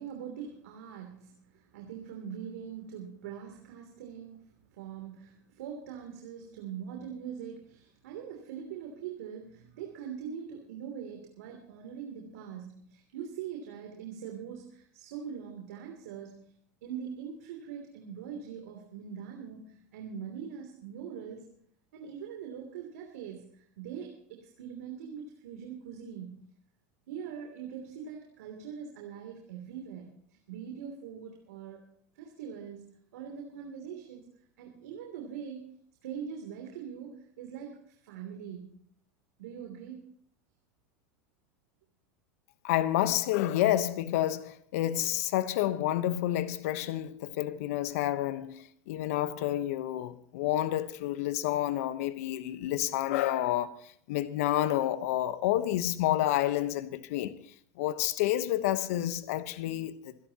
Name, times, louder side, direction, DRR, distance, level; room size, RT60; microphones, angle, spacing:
voice 1, 0.0-16.6 16.8-21.6 21.9-26.4 27.1-31.9 32.1-34.3 34.6-35.6 36.0-38.7 39.4-40.1, right 7 dB, 75° right, 3.1 m, -42 dB
voice 2, 42.6-57.4 57.8-59.9, left 13 dB, 70° left, 1.1 m, -29 dB
27.0 x 11.5 x 3.0 m
hypercardioid pair, 100°, 8 cm